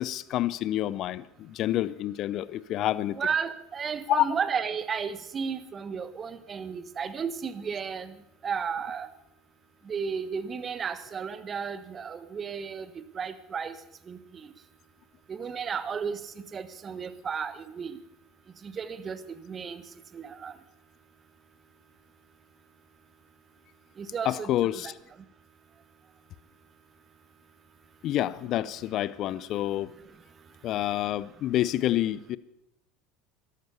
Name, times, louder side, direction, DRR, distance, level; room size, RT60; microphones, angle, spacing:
voice 1, 0.0-3.2 4.1-4.3 24.2-24.9 28.0-29.9 30.6-32.4, left 13 dB, 55° left, 19 dB, 0.5 m, -28 dB
voice 2, 3.1-8.1 8.4-9.1 9.9-13.8 14.1-14.5 15.3-16.2 16.5-18.0 18.6-19.2 19.5-19.8 20.1-20.5 24.0-24.9, right 6 dB, 35° right, 14 dB, 1.3 m, -33 dB
13.5 x 12.0 x 7.0 m, 0.82 s
hypercardioid pair, 75°, 0 cm